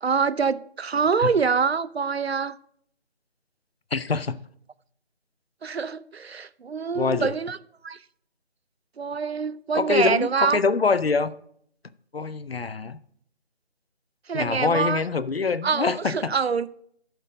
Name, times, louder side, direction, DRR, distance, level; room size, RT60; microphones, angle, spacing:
voice 1, 0.0-2.6 5.6-7.6 7.8-8.0 9.0-10.6 14.3-15.0 15.6-16.7, right 5 dB, 70° right, 0.5 m, -25 dB
voice 2, 3.9-4.4 7.0-7.3 9.7-11.3 12.1-13.0 14.3-16.3, left 4 dB, 65° left, 0.6 m, -24 dB
11.0 x 4.5 x 5.0 m
figure-of-eight pair, 160°, 32 cm